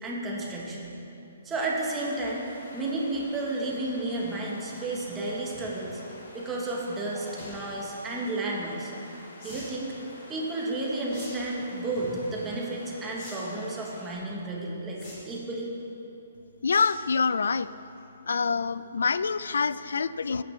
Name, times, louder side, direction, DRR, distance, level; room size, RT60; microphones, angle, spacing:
voice 1, 0.0-0.9 1.4-6.0 6.3-8.9 9.4-9.9 10.3-15.7, right 2 dB, 10° right, -3 dB, 0.9 m, -32 dB
sound 1, 1.8-14.1, left 1 dB, 60° left, 2.4 m, -49 dB
sound 2, 7.1-7.5 9.4-9.7 11.1-11.3 11.7-12.0 13.1-13.3 13.6-13.7 15.0-15.5 16.7-17.0 17.4-17.6 18.0-18.1 18.3-18.4, left 1 dB, 25° left, 2.7 m, -44 dB
voice 2, 16.6-17.7 18.3-20.4, left 5 dB, 85° left, 16 dB, 0.3 m, -26 dB
14.5 x 9.2 x 3.1 m, 2.9 s
hypercardioid pair, 180°, 0 cm